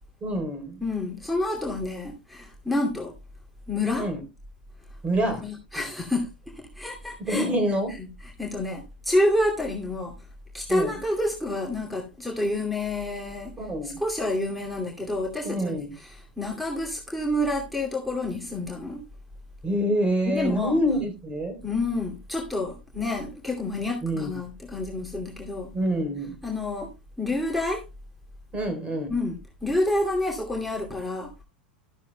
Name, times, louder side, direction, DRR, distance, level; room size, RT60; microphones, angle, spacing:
voice 1, 0.2-0.8 4.0-4.2 5.0-5.5 7.3-8.0 10.7-10.9 13.6-14.0 15.4-15.9 19.6-21.6 24.0-24.3 25.7-26.4 28.5-29.2, equal, 20° right, 3.7 m, -26 dB
voice 2, 0.8-3.1 3.7-4.1 5.1-7.5 8.2-10.1 10.5-13.5 13.8-19.0 20.3-20.8 21.6-25.7 26.4-26.9 27.2-27.8 29.1-31.4, left 1 dB, ahead, 2.5 m, -28 dB
13.0 x 13.0 x 2.2 m
figure-of-eight pair, 90°, 5 cm